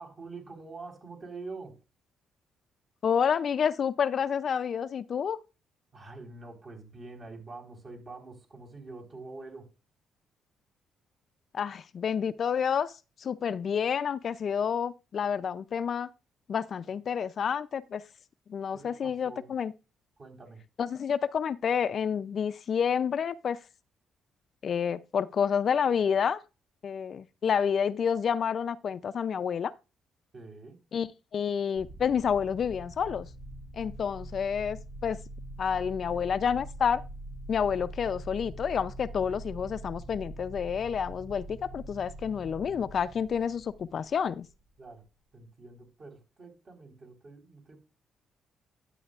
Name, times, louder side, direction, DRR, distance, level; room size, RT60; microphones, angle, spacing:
voice 1, 0.0-1.8 5.9-9.7 18.7-19.5 20.2-20.6 30.3-30.7 44.8-45.0 45.3-47.8, right 3 dB, 40° right, 4.0 m, -45 dB
voice 2, 3.0-5.4 11.5-12.9 13.2-16.1 16.5-18.0 18.5-19.7 20.8-23.6 24.6-26.4 26.8-29.7 30.9-33.3 33.7-35.2 35.6-37.0 37.5-44.5, left 7 dB, 55° left, 0.5 m, -29 dB
sound 1, 31.7-44.7, right 1 dB, 85° right, 3.8 m, -44 dB
11.0 x 9.1 x 2.5 m
cardioid pair, 90°, 0 cm